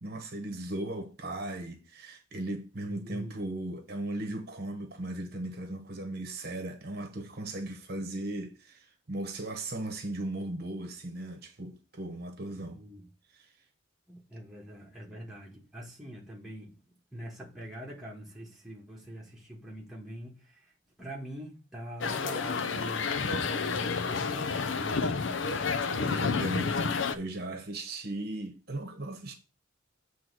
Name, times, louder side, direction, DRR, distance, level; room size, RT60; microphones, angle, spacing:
voice 1, 0.0-12.8 13.3-13.5 26.1-29.3, right 1 dB, 50° right, 1.0 m, -37 dB
voice 2, 2.8-3.3 12.6-13.1 14.1-16.7 17.1-20.7 21.0-25.2, equal, ahead, 1.6 m, -44 dB
sound 1, 22.0-27.2, left 4 dB, 65° left, 0.6 m, -30 dB
7.5 x 3.1 x 6.1 m
head